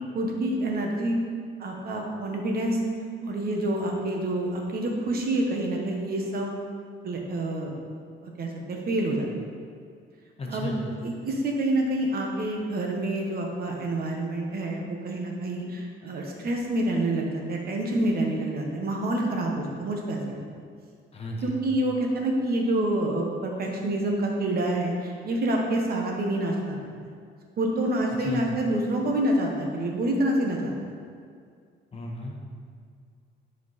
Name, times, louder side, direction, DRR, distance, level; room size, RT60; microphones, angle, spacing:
voice 1, 0.1-1.2 1.6-2.8 3.2-6.6 7.0-7.7 8.2-9.3 10.5-10.7 11.0-20.4 21.4-27.1 27.6-30.7, right 1 dB, 50° right, 1 dB, 1.2 m, -27 dB
voice 2, 10.4-10.8 21.1-21.5 28.2-28.5 31.9-32.3, left 2 dB, 30° left, -1 dB, 1.1 m, -34 dB
10.0 x 4.6 x 4.1 m, 2.2 s
cardioid pair, 160°, 21 cm